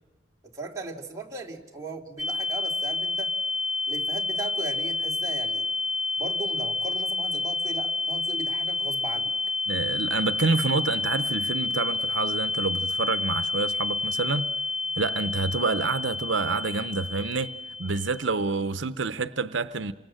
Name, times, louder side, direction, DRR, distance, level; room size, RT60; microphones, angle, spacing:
voice 1, 0.4-3.3 3.9-5.6 6.2-9.3, right 3 dB, 20° right, 3.0 m, -37 dB
sound 1, 2.2-18.5, left 3 dB, 35° left, 4.1 m, -29 dB
voice 2, 9.7-14.5 15.0-17.5 17.8-19.9, right 4 dB, 85° right, 0.8 m, -28 dB
29.5 x 25.0 x 7.7 m
head